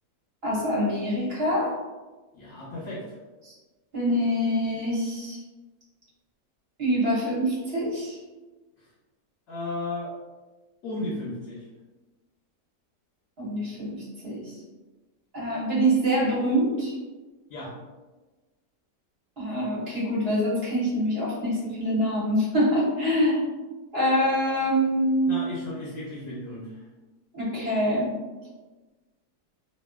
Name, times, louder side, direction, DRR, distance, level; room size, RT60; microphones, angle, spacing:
voice 1, 0.4-1.8 3.4-3.5 3.9-5.4 6.8-8.2 13.4-14.5 15.3-16.9 19.4-23.4 23.9-25.4 27.3-28.1, equal, 45° right, -8 dB, 1.1 m, -25 dB
voice 2, 2.3-3.2 8.8-8.9 9.5-10.1 10.8-11.7 17.5-17.7 25.3-26.9, left 2 dB, 65° left, -5 dB, 1.0 m, -34 dB
2.6 x 2.6 x 2.3 m, 1.2 s
omnidirectional pair, 1.6 m